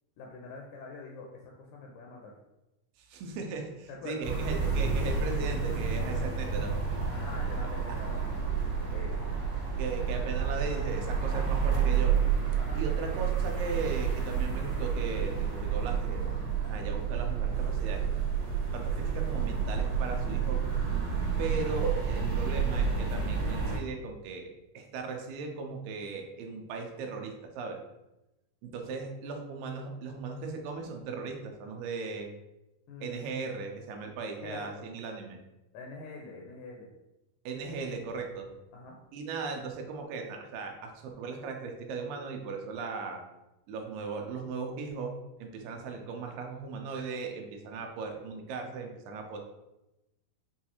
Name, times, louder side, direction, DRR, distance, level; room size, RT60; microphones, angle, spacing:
voice 1, 0.2-2.4 3.9-4.4 7.1-9.4 12.6-12.8 32.9-33.2 34.4-34.9 35.7-36.9 38.7-39.0, left 3 dB, 80° left, 0 dB, 2.0 m, -45 dB
voice 2, 3.0-6.7 7.9-8.0 9.8-12.2 12.7-16.3 16.6-18.1 18.7-20.6 21.4-24.5 24.7-27.8 28.6-32.3 33.0-35.4 37.5-38.5 39.1-43.2 43.7-49.4, right 4 dB, 90° right, 2 dB, 2.3 m, -37 dB
sound 1, 4.2-23.8, right 6 dB, 55° right, 2.0 m, -30 dB
sound 2, 17.5-23.8, equal, 70° right, 2.8 m, -46 dB
6.1 x 2.3 x 2.9 m, 0.95 s
omnidirectional pair, 3.8 m